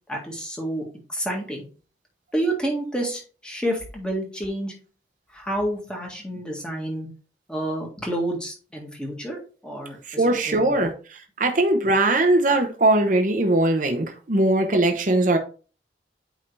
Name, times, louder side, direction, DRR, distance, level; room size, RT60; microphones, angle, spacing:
voice 1, 0.1-0.8 1.1-1.7 2.3-4.7 5.3-7.1 7.5-10.0 10.5-10.9, right 1 dB, 5° left, 1.8 m, -29 dB
voice 2, 10.1-10.9 11.4-15.4, right 2 dB, 45° right, 0.9 m, -20 dB
8.7 x 3.8 x 3.3 m
head